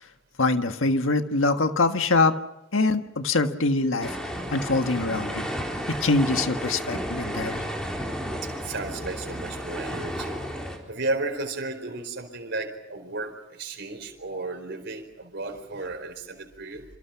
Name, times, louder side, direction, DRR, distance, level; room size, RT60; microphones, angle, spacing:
voice 1, 0.4-2.3 2.7-4.2 4.5-5.5 5.9-7.7, left 3 dB, 90° left, 7 dB, 1.6 m, -24 dB
sound 1, 4.0-10.8, equal, 5° left, 4.3 m, -32 dB
voice 2, 8.4-10.4 10.9-16.8, right 2 dB, 60° right, 4 dB, 4.6 m, -34 dB
27.5 x 27.0 x 5.9 m, 0.85 s
head